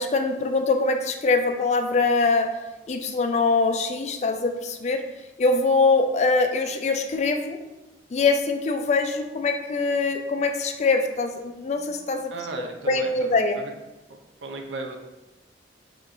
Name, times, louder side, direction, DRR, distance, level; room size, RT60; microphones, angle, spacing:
voice 1, 0.0-2.5 2.9-5.0 5.4-7.6 8.1-12.3 12.9-13.6, left 3 dB, 40° left, 6 dB, 0.3 m, -23 dB
voice 2, 12.3-13.7 14.4-15.0, right 2 dB, 90° right, 3 dB, 0.6 m, -36 dB
5.5 x 2.9 x 2.5 m, 1.0 s
head